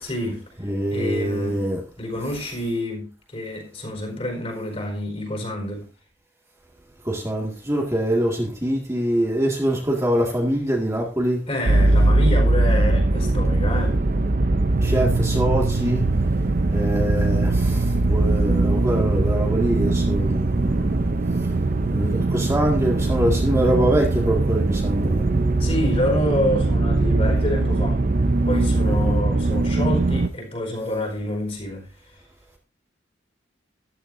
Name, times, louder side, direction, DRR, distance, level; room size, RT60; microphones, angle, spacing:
voice 1, 0.0-0.4 0.9-1.7 2.0-5.9 11.5-14.0 25.6-28.0 28.5-31.9, left 1 dB, 35° left, 4.7 m, -27 dB
voice 2, 0.6-1.8 7.1-11.4 14.8-16.1 16.7-17.8 18.1-21.1 21.8-25.3 28.8-29.0, right 1 dB, 15° right, 2.0 m, -24 dB
sound 1, 11.7-30.3, right 2 dB, 45° right, 0.6 m, -21 dB
14.0 x 12.5 x 2.7 m
head